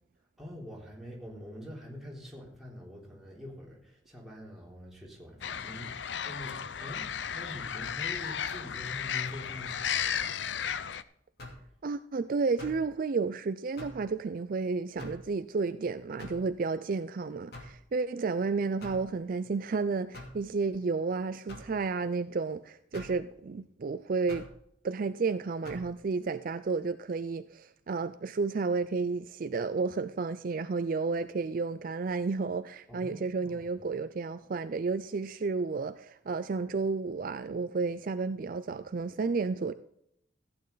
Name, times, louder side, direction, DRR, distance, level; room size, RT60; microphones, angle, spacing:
voice 1, 0.4-10.6 32.9-33.7, left 1 dB, ahead, 3.4 m, -45 dB
sound 1, 5.4-11.0, left 8 dB, 75° left, 0.6 m, -34 dB
sound 2, 11.4-11.7 12.6-12.9 13.8-14.1 15.0-15.3 16.2-16.5 17.5-17.8 18.8-19.1 20.1-20.4 21.5-21.7 22.9-23.2 24.3-24.5 25.6-25.9, left 1 dB, 60° left, 2.6 m, -45 dB
voice 2, 11.8-24.4 24.8-39.7, right 4 dB, 50° right, 0.4 m, -32 dB
15.0 x 8.8 x 4.0 m
head